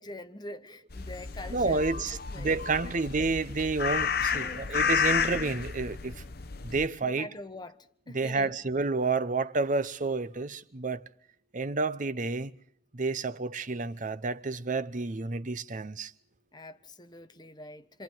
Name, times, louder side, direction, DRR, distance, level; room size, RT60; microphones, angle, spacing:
voice 1, 0.0-2.5 2.8-2.9 4.2-5.4 7.0-7.8 8.1-8.5 16.5-18.0, left 2 dB, 25° left, 1.1 m, -44 dB
sound 1, 0.9-6.9, left 6 dB, 60° left, 0.9 m, -31 dB
voice 2, 1.5-6.2 6.6-7.3 8.1-11.1 11.5-12.6 12.9-16.1, right 3 dB, 45° right, 0.9 m, -30 dB
26.5 x 26.0 x 4.6 m
head